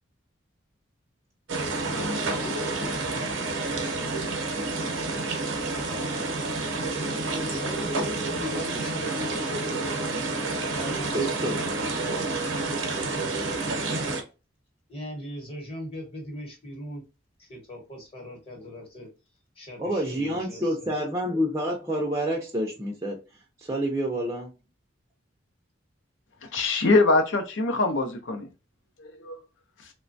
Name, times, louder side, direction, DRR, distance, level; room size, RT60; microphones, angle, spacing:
sound 1, 1.5-14.2, right 2 dB, 80° right, 0.7 m, -29 dB
voice 1, 1.9-3.3 10.1-10.2 11.1-11.6 19.8-23.2 23.6-24.5, equal, 15° right, 0.4 m, -29 dB
voice 2, 7.4-9.3 10.7-11.6 12.6-14.2 14.9-17.0 17.4-19.1 19.6-20.9, equal, 30° left, 1.0 m, -40 dB
voice 3, 26.5-28.5 29.0-29.4, left 3 dB, 70° left, 0.6 m, -23 dB
3.1 x 2.2 x 2.5 m
head